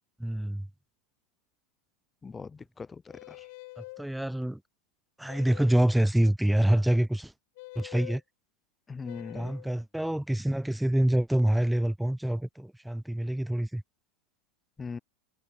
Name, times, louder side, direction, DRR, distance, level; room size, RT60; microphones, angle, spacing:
voice 1, 0.2-0.7 3.8-4.6 5.2-7.3 7.8-8.2 9.3-13.8, right 1 dB, 5° right, 0.5 m, -26 dB
voice 2, 2.2-3.5 8.9-9.5 14.8-15.0, left 5 dB, 20° left, 0.9 m, -40 dB
sound 1, 3.1-4.0 5.3-5.9 7.6-8.2 9.0-9.7, left 23 dB, 60° left, 3.7 m, -45 dB
hypercardioid pair, 90°, 0 cm